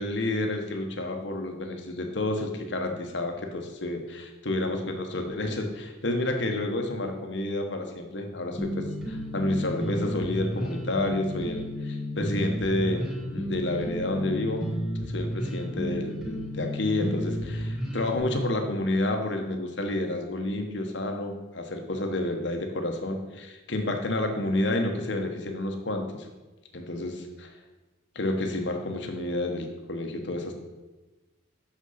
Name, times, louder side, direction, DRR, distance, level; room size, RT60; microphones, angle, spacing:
voice 1, 0.0-14.7 15.1-26.3 26.7-27.5 28.1-30.5, left 1 dB, 65° left, 4 dB, 1.2 m, -30 dB
sound 1, 8.6-18.2, equal, 5° right, 1.3 m, -32 dB
6.5 x 6.4 x 5.7 m, 1.2 s
head